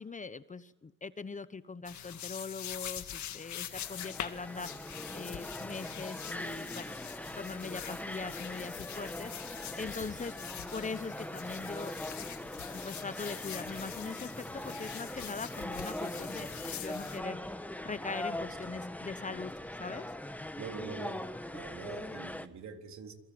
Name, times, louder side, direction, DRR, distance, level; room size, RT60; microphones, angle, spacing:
voice 1, 0.0-7.0 7.3-10.4 10.7-11.9 12.7-19.5 19.8-20.1, left 4 dB, 25° left, 14 dB, 1.1 m, -41 dB
sound 1, 1.9-17.2, left 10 dB, 70° left, 1.9 m, -44 dB
sound 2, 3.7-22.5, left 1 dB, 5° left, 1.5 m, -41 dB
voice 2, 20.6-21.2 21.5-23.1, right 5 dB, 65° right, 4 dB, 3.9 m, -44 dB
28.0 x 23.5 x 7.9 m, 0.99 s
cardioid pair, 90°, 30 cm